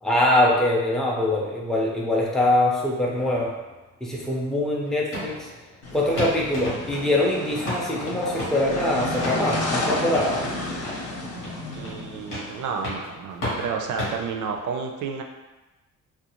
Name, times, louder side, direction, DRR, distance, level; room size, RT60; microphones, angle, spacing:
voice 1, 0.0-3.5 4.0-5.5 5.9-10.4, left 1 dB, ahead, -3 dB, 0.4 m, -23 dB
sound 1, 3.2-14.7, left 1 dB, 85° left, 1.1 m, -36 dB
sound 2, 5.8-12.8, left 2 dB, 50° left, 0.6 m, -31 dB
voice 2, 11.7-15.2, right 5 dB, 70° right, 3 dB, 0.4 m, -31 dB
2.4 x 2.2 x 2.9 m, 1.1 s
cardioid pair, 115°, 32 cm